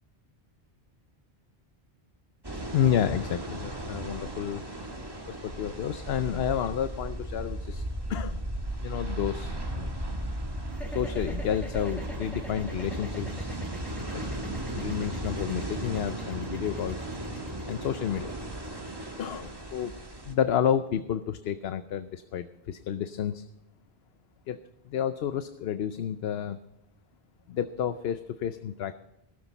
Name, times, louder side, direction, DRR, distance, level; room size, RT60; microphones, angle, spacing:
sound 1, 2.4-20.3, right 1 dB, 20° right, 1.8 m, -36 dB
voice 1, 2.7-4.6 5.3-7.8 8.1-8.4 8.8-9.9 10.9-13.5 14.1-14.2 14.7-17.0 17.7-18.3 19.2-23.4 24.5-26.6 27.5-28.9, left 9 dB, 70° left, 11 dB, 0.9 m, -30 dB
sound 2, 10.7-20.9, equal, ahead, 2.4 m, -45 dB
16.5 x 13.0 x 4.0 m, 0.88 s
omnidirectional pair, 1.1 m